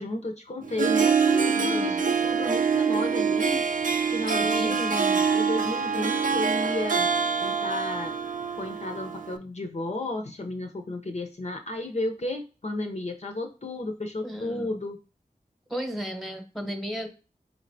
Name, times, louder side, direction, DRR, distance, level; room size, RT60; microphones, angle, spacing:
voice 1, 0.0-3.6 4.1-4.9 5.3-7.1 7.4-8.2 8.6-15.0 16.6-16.7, left 2 dB, 50° left, 3 dB, 0.6 m, -32 dB
Harp, 0.6-9.4, right 6 dB, 60° right, 0.4 m, -25 dB
voice 2, 1.5-2.0 4.3-5.2 14.2-14.8 15.7-17.1, equal, ahead, 5 dB, 0.9 m, -34 dB
4.4 x 3.2 x 2.6 m, 0.34 s
wide cardioid pair, 50°, 15 cm